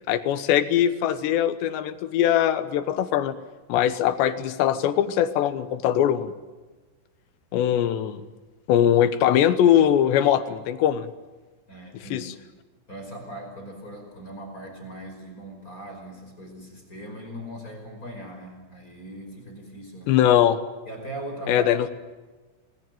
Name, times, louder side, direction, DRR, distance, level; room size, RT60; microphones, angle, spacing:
voice 1, 0.1-3.4 3.7-6.3 7.5-8.2 8.7-11.1 12.1-12.2 20.1-20.6 21.5-21.9, left 10 dB, 80° left, 11 dB, 3.3 m, -21 dB
voice 2, 11.7-12.4 12.9-20.2 20.9-21.7, right 1 dB, 20° left, 3 dB, 5.4 m, -39 dB
27.5 x 20.5 x 9.3 m, 1.2 s
omnidirectional pair, 5.1 m